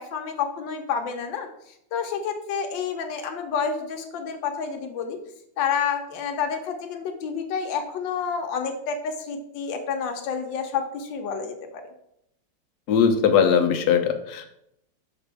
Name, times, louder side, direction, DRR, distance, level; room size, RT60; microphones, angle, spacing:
voice 1, 0.0-5.2 5.6-11.9, left 6 dB, 85° left, 5 dB, 1.4 m, -29 dB
voice 2, 12.9-14.5, left 7 dB, 70° left, 6 dB, 1.2 m, -20 dB
6.0 x 4.8 x 3.4 m, 0.77 s
omnidirectional pair, 2.0 m